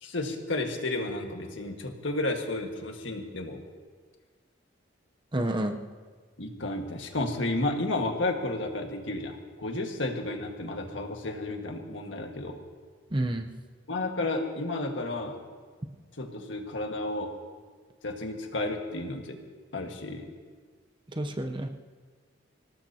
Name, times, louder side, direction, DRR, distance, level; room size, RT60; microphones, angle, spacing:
voice 1, 0.0-3.6 6.4-12.6 13.9-15.4 16.2-17.3 18.0-19.4 19.7-20.3, left 2 dB, 75° left, 3 dB, 1.7 m, -32 dB
voice 2, 5.3-5.7 13.1-13.5 21.1-21.7, right 1 dB, 25° right, 6 dB, 0.8 m, -29 dB
25.5 x 18.0 x 2.9 m, 1.6 s
head